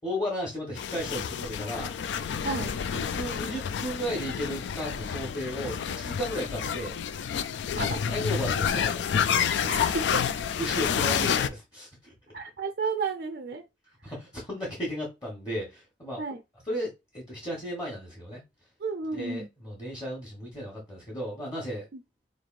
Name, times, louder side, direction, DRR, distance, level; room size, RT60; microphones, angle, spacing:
voice 1, 0.0-1.9 3.1-7.0 7.8-9.2 10.6-12.1 14.0-16.2 16.6-18.4 19.1-21.9, equal, 20° left, 1.1 m, -34 dB
sound 1, 0.8-11.5, left 7 dB, 75° left, 0.3 m, -29 dB
voice 2, 9.6-10.1 12.3-13.6 16.2-16.4 18.8-19.5, right 4 dB, 60° right, 0.4 m, -32 dB
3.9 x 3.2 x 2.5 m
head